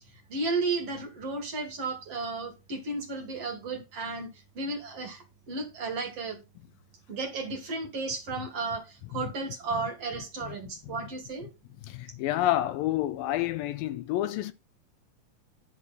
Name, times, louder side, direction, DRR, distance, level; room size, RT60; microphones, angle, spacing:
voice 1, 0.3-4.3 4.5-6.4 7.1-11.5, right 3 dB, 50° right, 2.2 m, -33 dB
voice 2, 11.9-14.5, left 14 dB, 80° left, 2.3 m, -28 dB
11.0 x 7.3 x 4.1 m
omnidirectional pair, 4.2 m